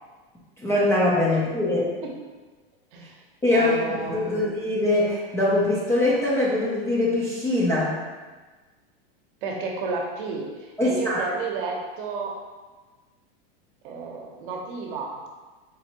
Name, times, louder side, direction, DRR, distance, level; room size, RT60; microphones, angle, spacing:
voice 1, 0.6-1.9 3.4-3.8 4.1-8.0 10.8-11.2, left 2 dB, 10° left, -7 dB, 0.4 m, -22 dB
voice 2, 3.5-4.5 9.4-12.4 13.8-15.2, right 4 dB, 60° right, 1 dB, 0.7 m, -32 dB
4.1 x 2.5 x 2.8 m, 1.3 s
supercardioid pair, 140°, 30 cm